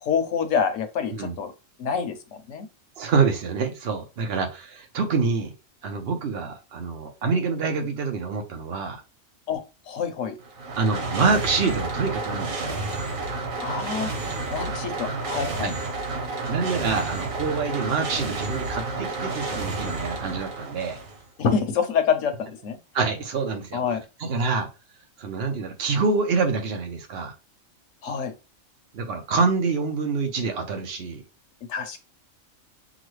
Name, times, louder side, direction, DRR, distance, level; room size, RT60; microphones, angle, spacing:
voice 1, 0.0-1.5 1.8-2.7 9.5-10.4 13.6-14.1 14.5-15.7 21.4-22.8 23.7-24.0 28.0-28.3 31.7-32.0, left 6 dB, 70° left, 1.1 m, -26 dB
voice 2, 3.0-5.5 5.8-9.0 10.8-12.8 15.6-15.7 16.5-21.0 22.9-23.8 24.2-24.7 25.2-27.3 28.9-31.2, right 4 dB, 55° right, 1.0 m, -26 dB
sound 1, 10.4-21.2, right 3 dB, 80° right, 1.5 m, -30 dB
6.1 x 2.2 x 3.1 m
omnidirectional pair, 1.4 m